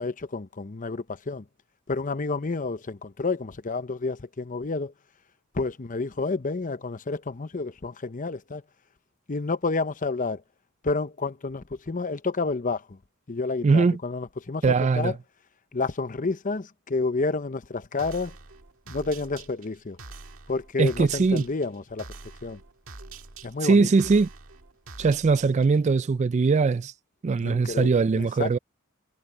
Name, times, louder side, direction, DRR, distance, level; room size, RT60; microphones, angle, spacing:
voice 1, 0.0-1.4 1.9-4.9 5.5-8.6 9.3-10.4 10.8-13.0 13.3-15.2 15.7-18.3 18.9-20.0 20.5-22.1 22.4-22.6 23.4-23.9 27.4-28.6, left 3 dB, 40° left, 0.8 m, -30 dB
voice 2, 13.6-14.0 14.6-15.1 20.8-21.4 23.6-24.3 25.0-26.9 27.2-28.6, right 4 dB, 35° right, 0.3 m, -21 dB
sound 1, 18.0-25.9, right 3 dB, 70° right, 2.1 m, -45 dB
head